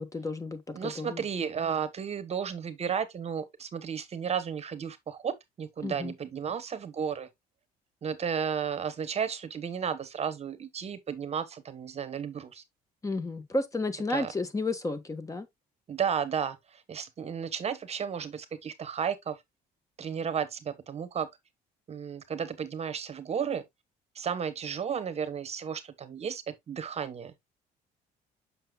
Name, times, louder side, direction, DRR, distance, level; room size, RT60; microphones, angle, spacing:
voice 1, 0.0-1.2 5.8-6.1 13.0-15.5, left 2 dB, 20° left, 1.3 m, -32 dB
voice 2, 0.7-7.3 8.0-12.6 14.1-14.3 15.9-19.4 20.0-21.3 21.9-23.6 24.1-27.3, right 7 dB, 40° right, 1.0 m, -33 dB
7.6 x 5.9 x 2.3 m
cardioid pair, 110°, 17 cm